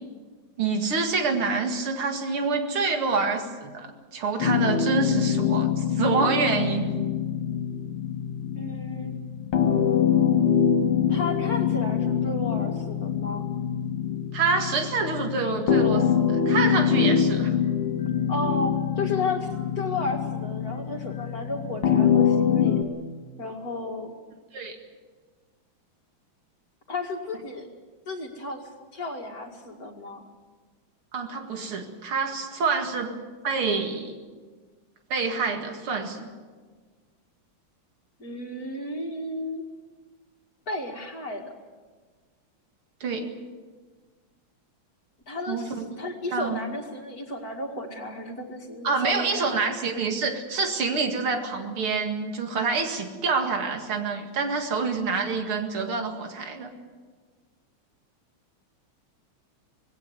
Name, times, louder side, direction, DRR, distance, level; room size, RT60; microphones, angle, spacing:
voice 1, 0.6-6.9 14.3-17.5 24.5-24.8 31.1-33.1 33.4-34.1 35.1-36.3 43.0-43.3 45.5-46.0 46.3-46.6 48.8-56.7, right 4 dB, 80° right, 5 dB, 2.9 m, -27 dB
sound 1, 4.4-22.8, left 8 dB, 80° left, 2.3 m, -24 dB
voice 2, 8.5-9.2 11.1-13.5 18.3-22.8 23.4-24.1 26.9-27.7 28.1-28.6 28.9-30.2 38.2-39.7 40.7-41.5 45.3-49.8, left 2 dB, 45° left, 3 dB, 2.5 m, -33 dB
20.0 x 17.0 x 9.6 m, 1.5 s
omnidirectional pair, 2.4 m